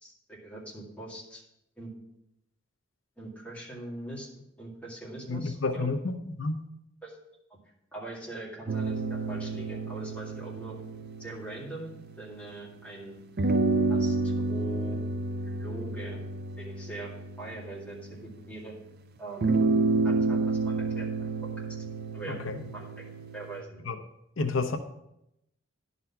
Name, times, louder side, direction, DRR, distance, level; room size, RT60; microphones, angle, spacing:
voice 1, 0.0-1.4 1.8-1.9 3.2-4.3 4.6-5.9 7.0-7.2 7.5-7.6 7.9-10.8 11.2-13.2 13.9-15.0 15.4-16.2 16.6-18.7 19.2-19.5 20.0-21.3 22.1-22.4 22.7-23.0 23.3-23.8, right 2 dB, 5° left, -6 dB, 2.2 m, -42 dB
voice 2, 5.3-6.6 22.3-22.5 23.9-24.0 24.4-24.8, left 3 dB, 90° left, 6 dB, 0.7 m, -30 dB
sound 1, 8.7-12.6 13.4-18.5 19.4-23.6, right 3 dB, 50° right, 0.5 m, -30 dB
11.0 x 4.1 x 5.7 m, 0.82 s
head